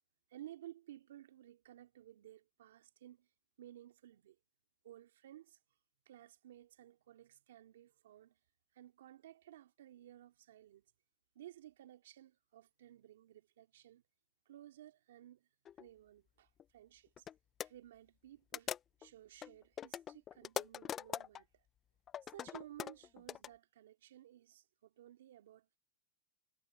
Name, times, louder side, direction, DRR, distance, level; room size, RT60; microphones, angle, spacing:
voice 1, 0.3-3.3 3.6-4.4 4.8-5.6 6.1-8.4 8.7-10.8 11.3-14.0 14.5-15.5 15.8-17.3 17.6-18.7 19.0-21.6 22.3-25.7, right 13 dB, 70° right, 2.4 m, -56 dB
sound 1, 15.7-15.9 16.6-16.7 17.2-17.3 17.6-17.7 18.5-19.1 19.4-21.4 22.1-23.5, left 9 dB, 25° left, 0.4 m, -42 dB
hypercardioid pair, 135°, 0 cm